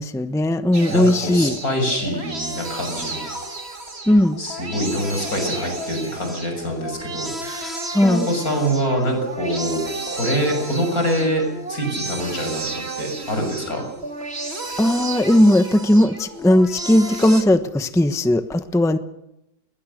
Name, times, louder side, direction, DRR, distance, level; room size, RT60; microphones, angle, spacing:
voice 1, 0.0-1.6 4.1-4.4 7.9-8.2 14.8-19.0, left 1 dB, ahead, 10 dB, 0.9 m, -17 dB
sound 1, 0.7-17.4, right 2 dB, 35° right, 3.1 m, -32 dB
voice 2, 0.9-3.2 4.4-11.4 11.7-12.6 13.0-13.8, equal, 50° left, 4 dB, 7.1 m, -25 dB
22.0 x 21.0 x 6.6 m, 0.86 s
omnidirectional pair, 1.9 m